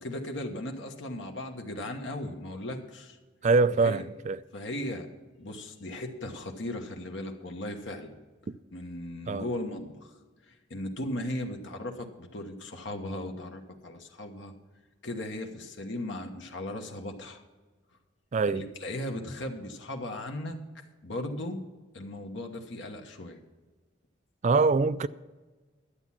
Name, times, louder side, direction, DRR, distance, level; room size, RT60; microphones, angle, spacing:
voice 1, 0.0-3.2 3.8-4.0 4.5-5.1 5.4-8.2 8.7-10.1 10.4-14.5 15.0-17.4 18.5-20.6 21.0-21.6 21.9-23.4, left 1 dB, 70° left, 1.3 m, -37 dB
voice 2, 3.4-4.4 8.5-8.6 9.3-9.4 18.3-18.6 24.4-25.1, right 4 dB, 35° right, 0.3 m, -24 dB
12.0 x 8.4 x 5.8 m
head